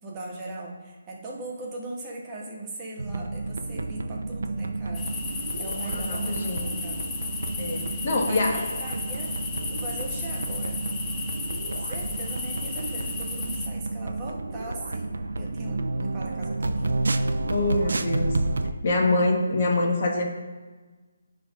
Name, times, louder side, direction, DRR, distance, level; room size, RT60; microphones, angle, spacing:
voice 1, 0.0-5.1 5.6-7.1 8.1-9.3 9.7-10.8 11.7-15.1 15.4-17.0, right 2 dB, 20° right, -2 dB, 1.4 m, -39 dB
sound 1, 3.0-18.7, right 2 dB, 80° right, 0.6 m, -30 dB
sound 2, 4.9-13.7, left 4 dB, 15° left, 0.8 m, -34 dB
voice 2, 5.9-6.8 7.6-8.6 17.5-18.4 18.8-20.2, left 2 dB, 45° left, 1 dB, 1.4 m, -25 dB
10.0 x 3.5 x 5.3 m, 1.3 s
hypercardioid pair, 160°, 0 cm